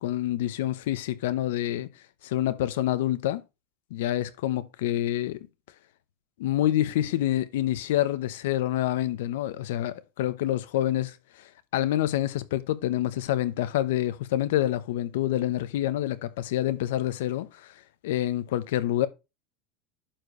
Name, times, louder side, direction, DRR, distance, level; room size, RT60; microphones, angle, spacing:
voice 1, 0.0-1.9 2.2-3.4 3.9-5.4 6.4-11.2 11.7-17.7 18.0-19.1, left 13 dB, 75° left, 0.9 m, -27 dB
11.5 x 4.6 x 3.1 m
supercardioid pair, 175°, 0 cm